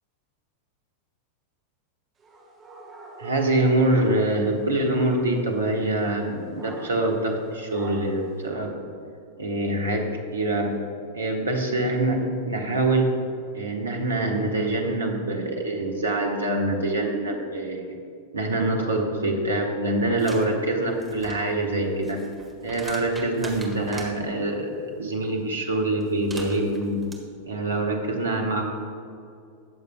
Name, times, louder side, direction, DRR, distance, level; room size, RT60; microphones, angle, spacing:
sound 1, 2.2-4.6 4.9-5.4 6.6-7.1 7.7-8.3, right 3 dB, 25° right, 2.3 m, -45 dB
voice 1, 3.2-8.8 9.4-10.8 11.1-13.2 13.5-17.9 18.3-22.2 22.6-27.1 27.4-28.6, right 2 dB, 75° right, 2 dB, 1.2 m, -25 dB
sound 2, 20.2-20.5 20.9-24.1 26.0-27.1, right 2 dB, 10° right, 1.6 m, -42 dB
20.5 x 6.8 x 2.2 m, 2.3 s
figure-of-eight pair, 90°, 0 cm